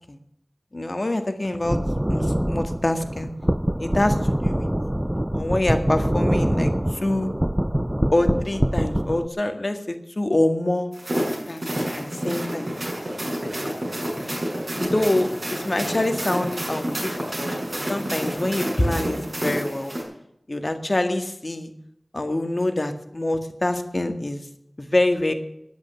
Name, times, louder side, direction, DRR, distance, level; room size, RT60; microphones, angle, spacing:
voice 1, 0.7-1.8 2.1-3.3 3.8-4.2 4.4-4.7 5.3-7.3 8.1-10.9 11.5-11.6 12.0-12.7 14.8-19.9 20.5-21.7 22.1-24.4 24.8-25.3, left 1 dB, 45° left, 7 dB, 1.9 m, -25 dB
sound 1, 1.6-9.3, equal, 15° right, 0.5 m, -24 dB
sound 2, 10.9-20.0, right 1 dB, 35° right, 7.0 m, -29 dB
10.5 x 10.5 x 9.9 m, 0.77 s
wide cardioid pair, 40°, 0 cm